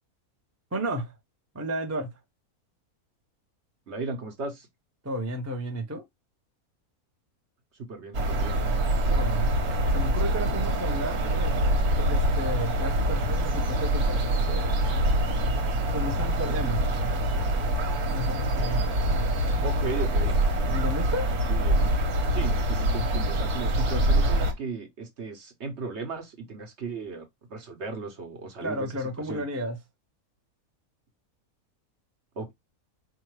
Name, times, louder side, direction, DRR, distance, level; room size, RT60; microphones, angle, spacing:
voice 1, 0.7-1.1 1.5-2.2 5.0-6.1 9.0-9.5 9.9-14.9 15.9-16.8 18.1-19.6 20.7-21.3 28.6-29.8, equal, 15° right, 0.5 m, -33 dB
voice 2, 3.9-4.7 7.7-8.6 19.6-20.4 21.5-21.9 22.3-28.9 29.3-29.4 32.3-32.5, right 4 dB, 50° right, 1.2 m, -36 dB
sound 1, 8.1-24.5, right 1 dB, 80° right, 1.5 m, -25 dB
4.7 x 2.5 x 3.1 m
omnidirectional pair, 1.6 m